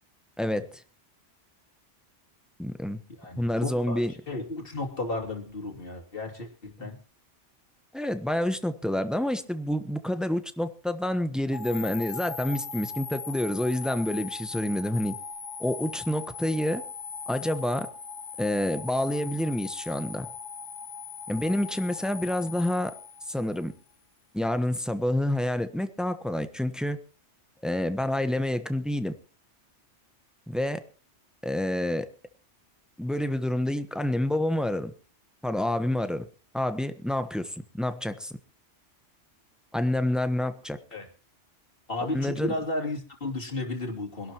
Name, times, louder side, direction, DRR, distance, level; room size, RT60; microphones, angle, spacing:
voice 1, 0.4-0.8 2.6-3.0 3.4-4.1 6.8-6.9 7.9-15.1 15.6-16.8 17.3-17.9 18.4-20.3 21.3-22.9 23.3-23.7 24.3-27.0 27.6-29.1 30.5-30.8 31.4-32.1 33.0-34.9 35.4-36.3 36.5-38.3 39.7-40.8 42.1-42.5, left 1 dB, ahead, 9 dB, 0.9 m, -28 dB
voice 2, 3.2-7.0 40.9-41.1 41.9-44.3, left 2 dB, 50° left, 1 dB, 3.0 m, -33 dB
sound 1, 11.5-23.7, left 5 dB, 75° left, 1.4 m, -39 dB
24.5 x 12.0 x 3.0 m, 0.35 s
omnidirectional pair, 1.2 m